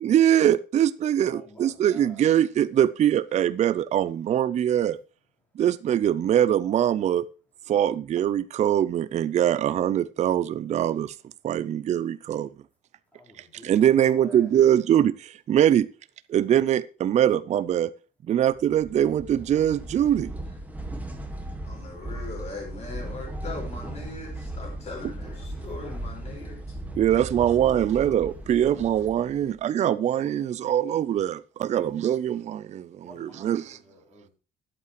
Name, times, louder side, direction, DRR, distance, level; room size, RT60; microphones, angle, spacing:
voice 1, 0.0-5.0 5.6-7.2 7.7-11.1 11.4-12.5 13.6-15.9 16.3-17.9 18.3-20.3 27.0-33.8, right 10 dB, 35° right, 0.4 m, -23 dB
voice 2, 1.2-2.4 13.1-14.7 25.1-26.1 27.6-28.9 31.6-32.2 33.0-34.3, equal, 10° left, 3.9 m, -50 dB
sound 1, 18.6-29.6, right 1 dB, 10° right, 1.5 m, -37 dB
voice 3, 21.6-26.7, left 3 dB, 35° left, 4.8 m, -40 dB
12.5 x 8.5 x 3.0 m
cardioid pair, 155°, 19 cm